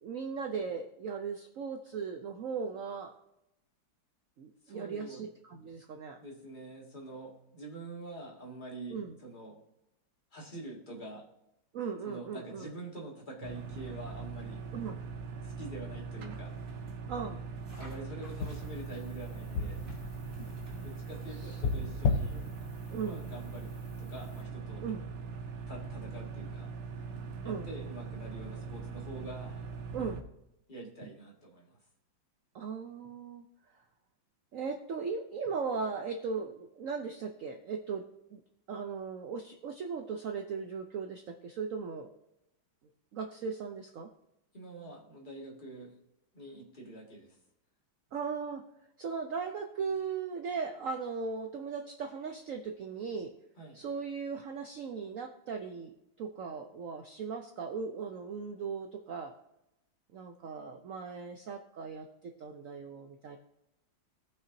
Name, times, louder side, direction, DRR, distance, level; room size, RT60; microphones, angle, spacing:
voice 1, 0.0-3.2 4.4-6.2 8.9-9.2 11.7-12.7 14.7-15.0 17.1-17.4 21.8-21.9 22.3-22.5 22.9-23.3 24.8-25.0 27.4-27.7 29.9-30.2 32.5-33.5 34.5-38.0 38.3-38.4 38.7-42.1 43.1-44.1 48.1-48.6 49.0-53.3 53.7-59.3 60.1-62.1 62.4-63.4, right 5 dB, 90° right, 5 dB, 0.7 m, -38 dB
voice 2, 4.6-5.2 6.2-9.6 10.3-11.2 12.0-14.6 15.4-16.5 17.8-19.8 20.8-22.4 23.0-23.7 24.0-24.8 25.7-26.7 27.4-29.6 30.7-31.8 44.5-45.9 46.3-47.4 53.6-53.8, right 2 dB, 25° left, -2 dB, 2.0 m, -45 dB
sound 1, 13.4-30.2, right 5 dB, 60° right, 0.7 m, -41 dB
sound 2, 16.5-17.0 17.6-19.1 19.7-21.6, right 1 dB, 40° right, 3.4 m, -59 dB
sound 3, 18.4-23.6 23.8-24.4, left 4 dB, 70° left, 1.4 m, -35 dB
17.5 x 5.9 x 2.7 m, 0.87 s
omnidirectional pair, 2.2 m